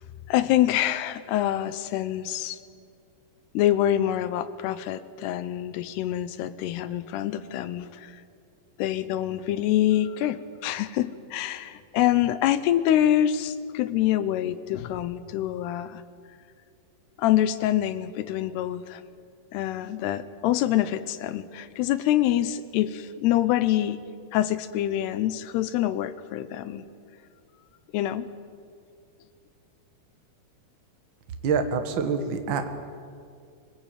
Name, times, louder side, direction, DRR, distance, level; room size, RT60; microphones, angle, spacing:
voice 1, 0.3-2.6 3.5-8.2 8.8-16.0 17.2-19.0 19.5-24.0 24.3-26.8 27.9-28.3, left 12 dB, 90° left, 14 dB, 3.0 m, -25 dB
voice 2, 31.4-32.7, right 5 dB, 75° right, 6 dB, 1.1 m, -26 dB
25.0 x 19.5 x 9.1 m, 2.3 s
omnidirectional pair, 4.6 m